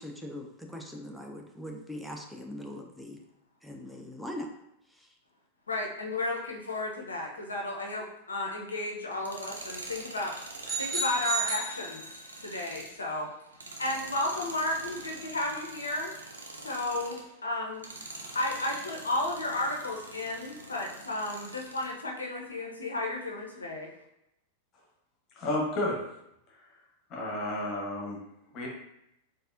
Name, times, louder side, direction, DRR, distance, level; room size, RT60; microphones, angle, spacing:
voice 1, 0.0-3.2 3.6-4.5 4.9-5.2, left 1 dB, ahead, 0 dB, 0.5 m, -41 dB
voice 2, 5.7-10.3 10.8-12.0 12.4-13.3 13.8-16.1 16.6-17.9 18.3-23.9, left 2 dB, 75° left, 0 dB, 0.5 m, -33 dB
Tools, 9.1-17.3 17.7-22.0, right 2 dB, 75° right, 0.5 m, -45 dB
sound 1, 10.7-12.5, right 3 dB, 15° right, 0.9 m, -33 dB
voice 3, 25.4-26.0 27.1-28.2 28.5-28.7, left 1 dB, 30° left, -2 dB, 1.0 m, -31 dB
4.0 x 2.6 x 2.5 m, 0.83 s
figure-of-eight pair, 90°, 0 cm